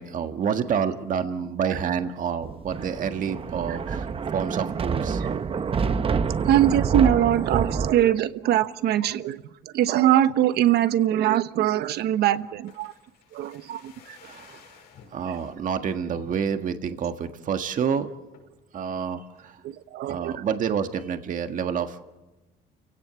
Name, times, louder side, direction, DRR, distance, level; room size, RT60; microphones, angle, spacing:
voice 1, 0.0-5.2 14.2-14.7 15.1-18.1 18.7-19.6 20.1-22.1, right 7 dB, 50° right, 7 dB, 1.7 m, -28 dB
Thunder, 2.4-7.9, right 5 dB, 35° right, 0.9 m, -27 dB
voice 2, 6.4-12.9 13.3-14.2 18.7-18.8 19.6-20.4, right 12 dB, 75° right, 12 dB, 1.1 m, -23 dB
sound 1, 12.3-15.6 16.1-16.8 17.2-17.3 17.5-17.8 18.3-18.7 19.1-19.8 20.1-20.2, left 6 dB, 80° left, 5.9 m, -53 dB
30.0 x 17.0 x 7.0 m, 1.1 s
cardioid pair, 110°, 17 cm